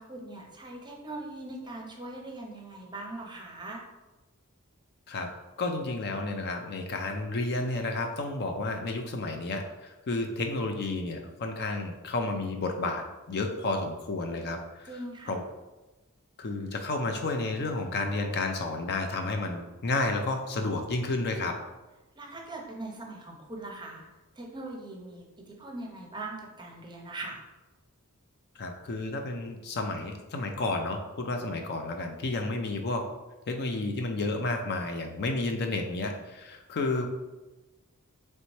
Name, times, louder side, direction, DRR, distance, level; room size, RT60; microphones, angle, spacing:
voice 1, 0.0-3.8 14.9-15.3 22.2-24.1 24.4-27.4, right 2 dB, 20° right, 0 dB, 0.6 m, -41 dB
voice 2, 5.1-15.4 16.4-21.6 28.6-33.0 33.5-37.1, left 2 dB, 50° left, 5 dB, 0.4 m, -31 dB
4.0 x 3.2 x 3.1 m, 1.1 s
head